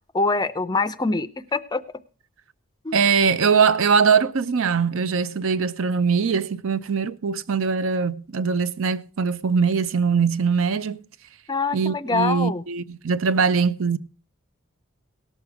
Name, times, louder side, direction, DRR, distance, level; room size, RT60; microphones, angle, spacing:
voice 1, 0.1-1.8 2.8-3.0 11.5-12.6, left 3 dB, 20° left, 0.4 m, -24 dB
voice 2, 2.9-11.0 11.7-14.0, right 5 dB, 65° right, 0.5 m, -21 dB
17.5 x 6.6 x 4.6 m
head